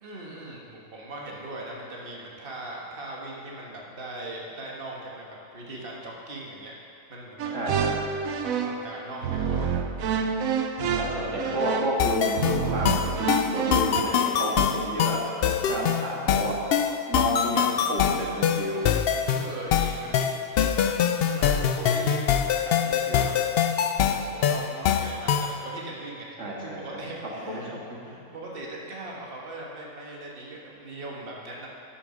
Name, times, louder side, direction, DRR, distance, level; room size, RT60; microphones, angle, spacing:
voice 1, 0.0-6.7 7.1-7.5 8.4-9.7 10.9-11.6 15.6-16.6 19.3-20.4 21.3-23.3 24.1-26.3 26.6-27.7 28.0-31.7, right 2 dB, 45° right, -3 dB, 1.6 m, -39 dB
sound 1, 7.4-8.9 9.2-14.0, right 6 dB, 80° right, 1.1 m, -28 dB
voice 2, 7.5-7.9 10.9-16.5 17.1-18.8 26.4-27.0 27.5-28.0, equal, 60° right, -4 dB, 2.0 m, -31 dB
sound 2, 12.0-25.6, left 8 dB, 65° left, 0.6 m, -24 dB
11.5 x 7.3 x 5.1 m, 2.5 s
omnidirectional pair, 1.4 m